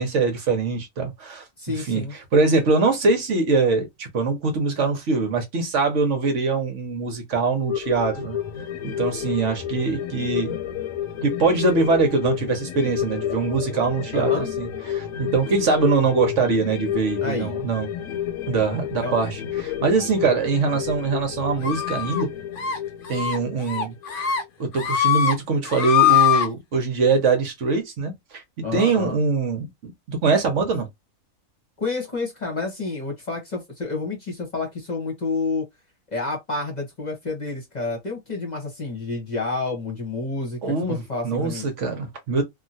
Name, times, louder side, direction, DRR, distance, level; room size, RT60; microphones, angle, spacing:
voice 1, 0.0-8.4 8.8-10.6 11.2-17.9 18.5-22.3 23.1-28.4 28.7-30.9 40.6-42.4, right 4 dB, 60° right, 1.1 m, -23 dB
voice 2, 1.6-2.1 14.1-14.5 17.2-17.5 19.0-19.2 28.6-29.2 31.8-35.6 36.1-41.7, left 3 dB, 35° left, 1.0 m, -29 dB
sound 1, 7.7-24.5 24.8-24.9, left 10 dB, 75° left, 0.9 m, -30 dB
sound 2, 21.6-22.2 22.6-22.8 23.1-23.4 23.7-24.4 24.7-25.3 25.7-26.5, left 10 dB, 55° left, 0.6 m, -21 dB
2.9 x 2.5 x 2.6 m
omnidirectional pair, 1.5 m